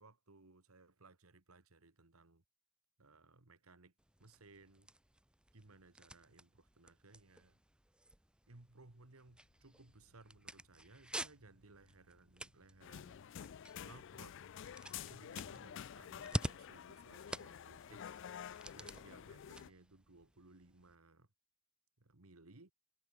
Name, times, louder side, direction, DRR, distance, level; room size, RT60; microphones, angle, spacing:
voice 1, 0.0-2.4 3.0-3.9 4.2-4.9 5.5-7.6 8.5-13.3 13.8-14.4 15.0-18.2 18.7-21.3 22.0-22.7, right 3 dB, 90° right, 1.9 m, -62 dB
sound 1, 4.0-21.0, right 1 dB, 5° right, 0.6 m, -50 dB
sound 2, 9.3-19.4, left 1 dB, 80° left, 1.9 m, -75 dB
sound 3, 12.8-19.7, left 9 dB, 60° left, 0.4 m, -50 dB
head